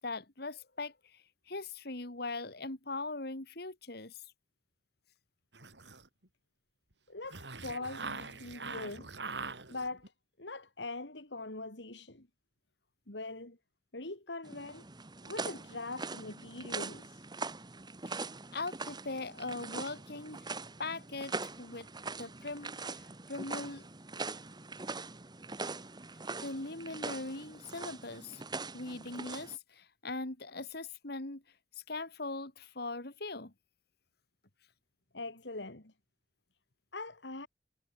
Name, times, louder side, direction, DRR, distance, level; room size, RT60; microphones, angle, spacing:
voice 1, 0.0-4.2 18.5-20.5 20.8-21.9 22.2-23.9 26.4-28.4 28.7-31.4 31.9-33.5, left 3 dB, 60° left, 2.8 m, -40 dB
sound 1, 5.5-6.3 7.2-10.1, right 4 dB, 80° right, 5.7 m, -43 dB
voice 2, 7.1-9.1 9.7-10.1 10.4-12.3 13.1-13.6 13.9-14.8 15.2-17.2 35.1-35.9 36.9-37.5, left 2 dB, 90° left, 3.8 m, -42 dB
sound 2, 14.4-29.6, right 3 dB, 25° right, 1.5 m, -42 dB
head